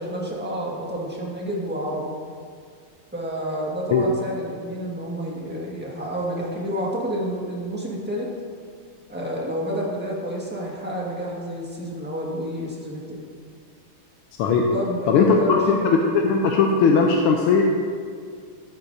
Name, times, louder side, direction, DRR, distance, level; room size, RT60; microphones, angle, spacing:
voice 1, 0.0-2.0 3.1-8.3 9.1-13.2 14.7-15.9, equal, 5° right, -4 dB, 1.2 m, -29 dB
voice 2, 15.1-17.6, left 5 dB, 80° left, 1 dB, 1.5 m, -18 dB
13.0 x 9.2 x 2.7 m, 2.1 s
omnidirectional pair, 2.4 m